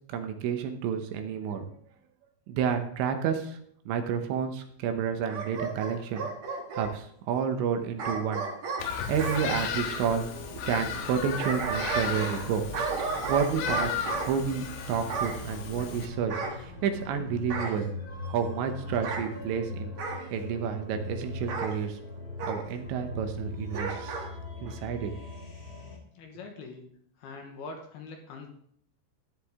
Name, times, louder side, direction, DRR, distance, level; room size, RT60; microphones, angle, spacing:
voice 1, 0.1-1.7 2.5-3.6 3.9-6.3 6.7-8.5 9.1-12.6 13.3-13.9 14.2-16.3 16.6-17.9 18.3-19.9 20.3-22.0 22.5-24.3 24.6-25.1, right 7 dB, 75° right, 6 dB, 3.1 m, -30 dB
Bark / Growling, 5.3-6.9 8.0-9.4 11.1-12.5 12.7-14.3 15.1-15.4 16.3-17.1 17.5-17.8 18.9-19.3 20.0-20.3 21.5-21.7 22.4-22.6 23.7-24.3 24.7-24.8, right 4 dB, 55° right, 2.1 m, -33 dB
Bird vocalization bird call bird song, 8.8-16.1, left 7 dB, 85° left, 4.0 m, -35 dB
sound 1, 9.9-26.0, left 3 dB, 40° left, 1.4 m, -41 dB
voice 2, 26.1-26.9 27.2-28.5, left 4 dB, 70° left, 3 dB, 2.7 m, -43 dB
13.0 x 10.0 x 3.6 m, 0.65 s
omnidirectional pair, 5.5 m